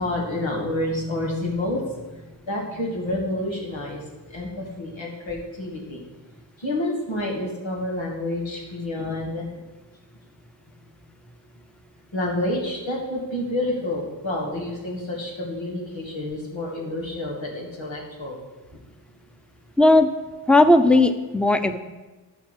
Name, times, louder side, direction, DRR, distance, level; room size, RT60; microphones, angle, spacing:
voice 1, 0.0-6.0 6.6-9.5 12.1-18.4 18.7-18.8, left 1 dB, 90° left, -2 dB, 2.4 m, -29 dB
voice 2, 19.8-20.1 20.5-21.8, left 2 dB, ahead, 9 dB, 0.7 m, -16 dB
12.0 x 4.6 x 7.4 m, 1.2 s
cardioid pair, 40°, 45 cm